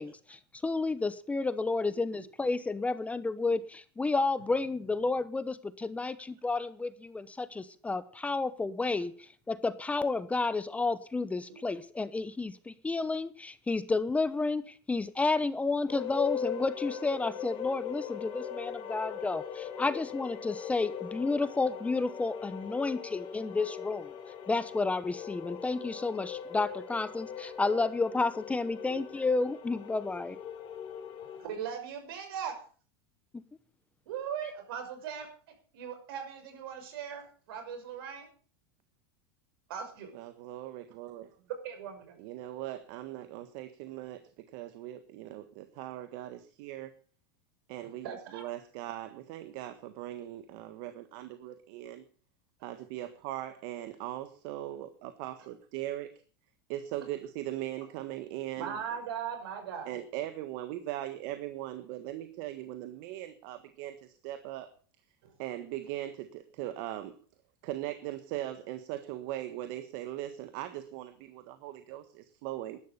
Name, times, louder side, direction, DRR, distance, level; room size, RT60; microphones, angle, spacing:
voice 1, 0.0-24.1 24.5-30.4 33.3-33.4, left 3 dB, 10° left, 14 dB, 0.9 m, -31 dB
sound 1, 15.9-31.5, left 8 dB, 40° left, 4.0 m, -40 dB
voice 2, 31.4-32.5 34.1-35.3 35.7-38.3 39.7-40.1 41.6-42.1 48.0-48.4 58.6-59.9 65.2-65.3, right 8 dB, 75° right, 5 dB, 6.2 m, -39 dB
voice 3, 40.1-41.3 42.2-46.9 47.7-52.0 52.6-56.1 56.7-58.8 59.8-64.7 65.4-67.2 67.6-72.8, right 14 dB, 60° right, 10 dB, 1.5 m, -40 dB
13.0 x 11.5 x 6.8 m, 0.42 s
supercardioid pair, 125°, 12 cm